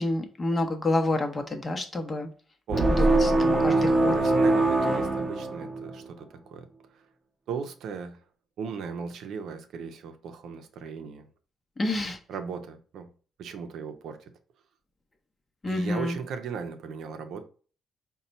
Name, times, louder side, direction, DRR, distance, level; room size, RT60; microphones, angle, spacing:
voice 1, 0.0-2.3 2.9-4.1 11.8-12.2 15.6-16.2, left 2 dB, 25° left, 0.8 m, -28 dB
sound 1, 2.7-6.0, right 2 dB, 20° right, 0.8 m, -23 dB
voice 2, 2.7-3.8 4.1-6.7 6.9-7.0 7.5-8.2 8.6-11.3 12.3-13.1 13.4-14.3 15.6-17.4, right 6 dB, 75° right, 0.5 m, -37 dB
4.1 x 2.2 x 4.0 m
cardioid pair, 90°, 0 cm